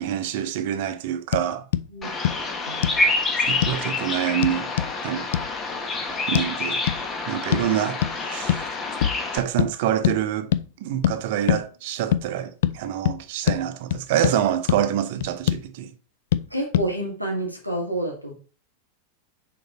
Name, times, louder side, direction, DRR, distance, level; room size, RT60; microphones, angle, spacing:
voice 1, 0.0-1.6 3.4-4.7 5.0-5.3 6.3-6.9 7.3-8.7 9.3-10.5 10.8-15.9, right 10 dB, 50° right, 0.8 m, -26 dB
sound 1, 1.3-1.5 1.7-1.9 2.2-2.4 2.8-3.0 3.6-3.8 4.4-4.9 5.3-5.5 6.3-6.5 6.9-7.0 7.5-7.7 8.0-8.2 8.5-8.7 9.0-9.2 9.6-9.7 10.0-10.2 10.5-10.6 11.0-11.2 11.5-11.6 12.1-12.2 12.6-12.8 13.0-13.2 13.5-13.6 13.9-14.4 14.7-14.8 15.2-15.6 16.3-16.4 16.7-16.9, left 11 dB, 55° left, 0.4 m, -23 dB
Bird vocalization bird call bird song, 2.0-9.4, left 3 dB, 20° left, 1.4 m, -27 dB
voice 2, 16.5-18.3, right 1 dB, 90° left, 2.2 m, -28 dB
6.5 x 4.6 x 4.1 m
figure-of-eight pair, 90°, 0 cm